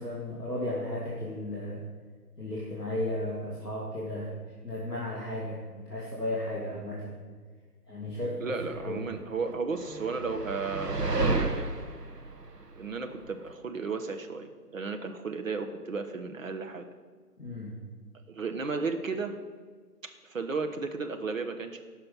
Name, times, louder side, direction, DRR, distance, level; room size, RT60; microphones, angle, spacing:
voice 1, 0.0-1.8 2.4-4.3 4.6-7.1 7.9-8.5 8.8-9.0 17.4-17.7, left 1 dB, ahead, -18 dB, 0.7 m, -34 dB
voice 2, 8.4-11.7 12.8-16.9 18.3-19.4 20.0-21.8, right 4 dB, 55° right, 6 dB, 1.3 m, -34 dB
sound 1, 8.6-13.5, right 3 dB, 85° right, 1.4 m, -32 dB
15.0 x 5.6 x 5.9 m, 1.5 s
figure-of-eight pair, 140°, 47 cm